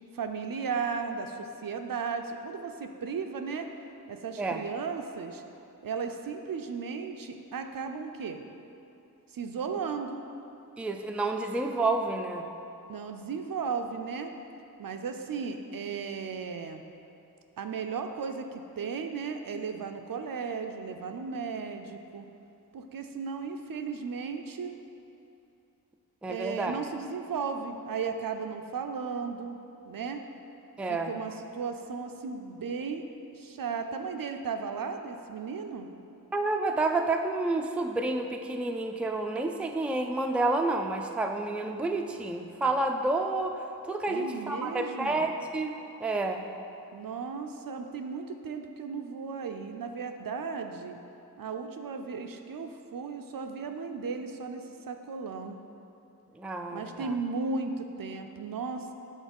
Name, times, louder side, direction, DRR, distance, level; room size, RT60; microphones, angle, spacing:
voice 1, 0.1-3.7 4.1-5.4 5.8-8.4 9.3-10.2 12.9-14.3 14.8-16.8 17.6-22.3 22.7-24.7 26.3-29.5 29.8-30.3 30.9-33.1 33.3-35.9 44.1-45.3 46.9-51.0 51.4-55.6 56.7-58.9, right 5 dB, 65° right, 6 dB, 0.5 m, -35 dB
voice 2, 10.8-12.5 26.2-26.7 30.8-31.1 36.3-43.5 43.9-46.4 56.4-57.1, right 2 dB, 5° right, 4 dB, 0.4 m, -29 dB
6.3 x 3.9 x 5.2 m, 2.8 s
cardioid pair, 40°, 38 cm